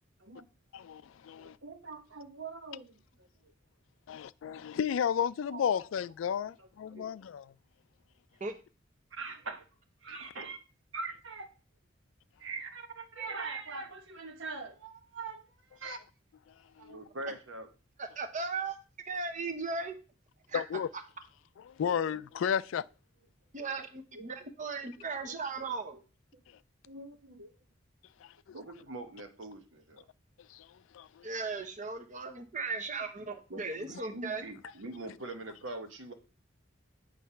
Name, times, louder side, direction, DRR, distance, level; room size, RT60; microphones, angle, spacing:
voice 1, 0.7-1.6 4.1-7.5 10.1-10.2 15.8-15.9 16.5-17.1 20.5-20.9 21.6-22.9 26.5-26.6 28.2-28.6 30.4-31.3 35.1-35.2, left 8 dB, 80° left, 0.3 m, -34 dB
voice 2, 1.4-2.9 3.2-3.3 5.5-5.6 6.9-7.1 9.1-9.6 10.0-10.6 10.9-11.5 12.4-15.4 15.7-16.0 16.8-17.7 21.8-22.2 24.1-24.5 25.3-25.4 26.3-26.4 26.9-27.5 28.5-30.1 32.7-32.8 33.5-36.1, right 3 dB, 80° right, 1.1 m, -43 dB
voice 3, 18.0-18.8 19.1-19.9 20.5-20.6 23.5-26.0 31.2-34.4, right 4 dB, 40° right, 0.9 m, -37 dB
8.5 x 3.3 x 5.6 m
head